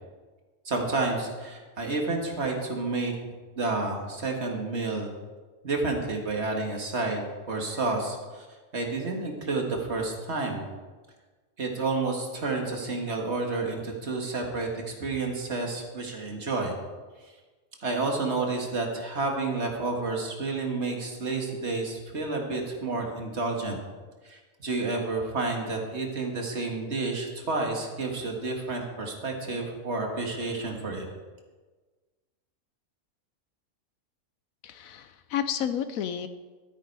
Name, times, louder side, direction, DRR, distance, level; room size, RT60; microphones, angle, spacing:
voice 1, 0.7-3.1 3.6-5.1 5.6-8.5 8.7-10.7 11.6-16.7 17.8-23.8 24.2-31.1, right 3 dB, 50° right, 1 dB, 2.1 m, -30 dB
voice 2, 34.6-36.3, left 9 dB, 75° left, 10 dB, 1.0 m, -31 dB
13.0 x 9.3 x 4.7 m, 1.3 s
omnidirectional pair, 1.5 m